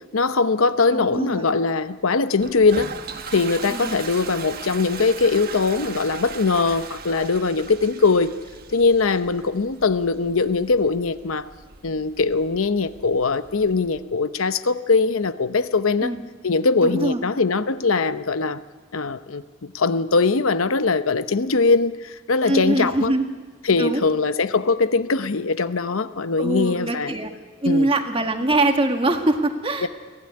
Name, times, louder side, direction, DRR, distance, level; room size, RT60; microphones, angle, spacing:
voice 1, 0.1-2.9 3.3-8.3 8.7-11.5 11.8-16.1 16.4-18.6 18.9-23.1 23.6-27.1 27.7-27.9 29.8-29.9, left 4 dB, 85° left, 13 dB, 0.8 m, -21 dB
voice 2, 0.9-1.5 3.7-4.1 16.0-16.2 16.8-17.2 22.4-23.3 23.8-24.1 26.4-27.3 27.6-29.9, right 2 dB, 25° right, 5 dB, 1.7 m, -23 dB
Toilet flush, 2.4-14.0, right 5 dB, 45° right, 1.4 m, -39 dB
23.5 x 16.5 x 9.8 m, 1.5 s
head